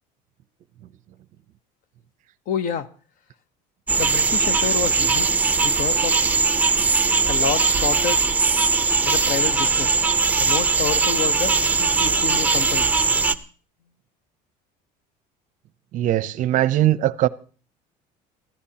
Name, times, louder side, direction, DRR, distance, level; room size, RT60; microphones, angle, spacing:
voice 1, 2.5-2.9 4.0-5.3 5.6-6.2 7.3-8.3 9.0-9.9 10.4-12.9, left 7 dB, 55° left, 0.9 m, -28 dB
sound 1, 3.9-13.4, right 4 dB, 10° right, 0.7 m, -20 dB
voice 2, 15.9-17.3, right 13 dB, 50° right, 0.6 m, -20 dB
24.5 x 14.5 x 2.9 m
cardioid pair, 145°, 17 cm